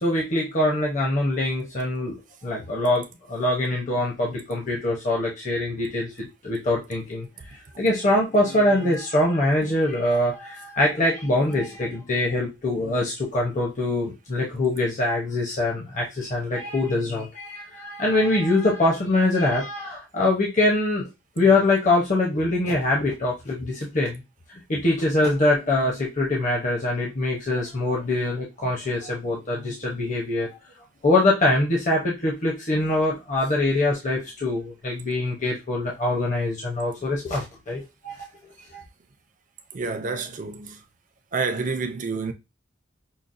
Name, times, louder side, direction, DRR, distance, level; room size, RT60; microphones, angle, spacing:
voice 1, 0.0-2.2 2.4-3.0 3.3-21.1 21.4-24.2 24.7-30.5 31.0-38.1 38.7-38.8, left 2 dB, 40° left, 0.8 m, -23 dB
voice 2, 39.7-40.8 41.3-42.3, right 4 dB, 45° right, 0.5 m, -29 dB
5.7 x 2.1 x 2.6 m
head